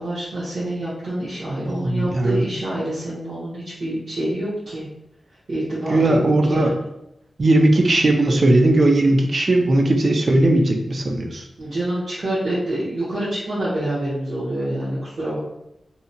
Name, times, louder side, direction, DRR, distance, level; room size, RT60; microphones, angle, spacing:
voice 1, 0.0-4.9 5.5-6.7 11.6-15.4, right 1 dB, 70° right, -10 dB, 0.8 m, -27 dB
voice 2, 1.7-2.4 5.9-6.7 7.4-11.5, right 1 dB, 45° right, 2 dB, 0.3 m, -18 dB
2.7 x 2.1 x 2.6 m, 0.82 s
wide cardioid pair, 160°, 0 cm